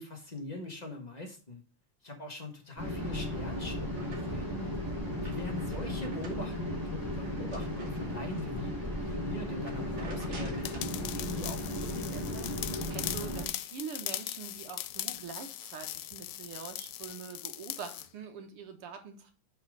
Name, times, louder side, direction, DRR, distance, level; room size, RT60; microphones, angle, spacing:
voice 1, 0.0-1.6 2.0-4.5 5.2-8.8 9.0-12.5, left 1 dB, 20° left, 1.3 m, -42 dB
sound 1, 2.8-13.5, left 1 dB, 10° right, 2.3 m, -35 dB
sound 2, 3.3-4.6 5.0-8.6 9.0-9.2 9.5-11.0, right 3 dB, 60° right, 2.5 m, -52 dB
sound 3, 10.6-18.1, left 13 dB, 90° left, 0.9 m, -40 dB
voice 2, 12.9-19.3, right 6 dB, 80° right, 2.3 m, -44 dB
5.6 x 5.2 x 6.4 m
omnidirectional pair, 2.4 m